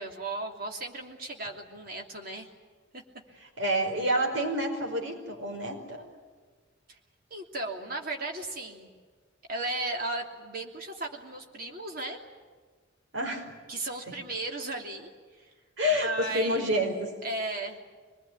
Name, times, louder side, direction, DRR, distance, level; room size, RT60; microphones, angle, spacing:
voice 1, 0.0-2.5 2.9-3.0 6.9-7.0 7.3-8.9 9.5-12.2 13.7-15.1 15.4-15.5 16.0-16.7 17.2-17.8, right 2 dB, 50° right, 2 dB, 3.0 m, -35 dB
voice 2, 3.6-6.0 13.1-13.5 15.8-17.1, equal, 75° right, 2 dB, 5.1 m, -28 dB
25.0 x 21.0 x 9.6 m, 1.5 s
head